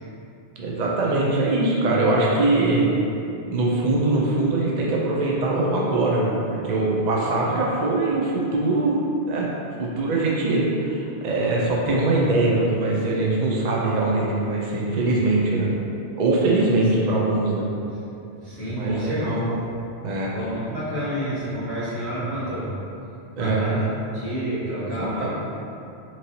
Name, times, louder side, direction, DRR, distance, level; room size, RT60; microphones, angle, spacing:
voice 1, 0.6-2.9 3.5-6.3 6.6-9.0 9.3-9.5 9.8-15.7 16.2-17.7 18.6-19.4 20.0-20.3 23.4-23.8 24.8-25.3, right 2 dB, 50° right, -4 dB, 0.5 m, -22 dB
voice 2, 18.3-19.6 20.3-22.8 23.4-23.9 24.1-25.3, equal, 75° right, -10 dB, 1.4 m, -29 dB
4.0 x 3.1 x 2.7 m, 2.7 s
omnidirectional pair, 1.1 m